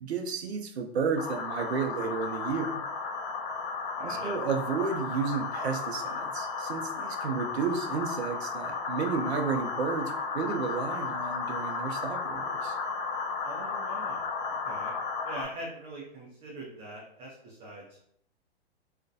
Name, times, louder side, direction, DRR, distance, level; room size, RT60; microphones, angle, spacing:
voice 1, 0.0-2.8 4.0-12.8, right 5 dB, 80° right, 5 dB, 0.5 m, -32 dB
sound 1, 1.2-15.4, left 5 dB, 45° left, 0.7 m, -34 dB
voice 2, 4.0-4.3 13.4-14.9 15.2-18.0, right 1 dB, 20° right, -4 dB, 0.4 m, -43 dB
2.4 x 2.1 x 2.5 m, 0.68 s
hypercardioid pair, 115°, 32 cm